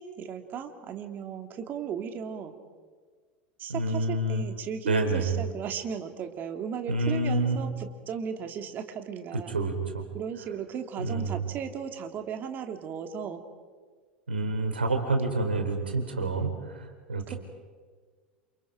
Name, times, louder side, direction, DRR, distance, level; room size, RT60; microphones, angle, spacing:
voice 1, 0.0-2.5 3.6-9.6 10.1-13.4 17.3-17.4, right 7 dB, 35° right, 6 dB, 2.7 m, -36 dB
voice 2, 3.7-4.4 4.9-5.3 6.9-7.6 9.5-10.0 11.0-11.4 14.3-17.4, right 2 dB, 80° right, 4 dB, 4.2 m, -28 dB
28.5 x 28.5 x 5.2 m, 1.5 s
figure-of-eight pair, 80°, 5 cm